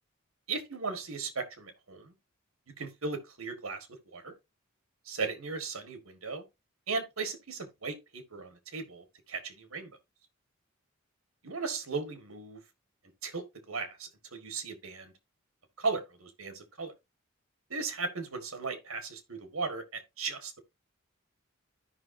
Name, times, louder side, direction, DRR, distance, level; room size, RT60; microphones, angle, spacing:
voice 1, 0.5-2.1 2.8-3.8 4.1-4.3 5.1-6.4 6.9-9.9 11.4-12.6 13.2-15.1 15.8-16.9 17.7-20.6, right 4 dB, 85° right, 1.8 m, -37 dB
13.0 x 5.5 x 2.7 m
head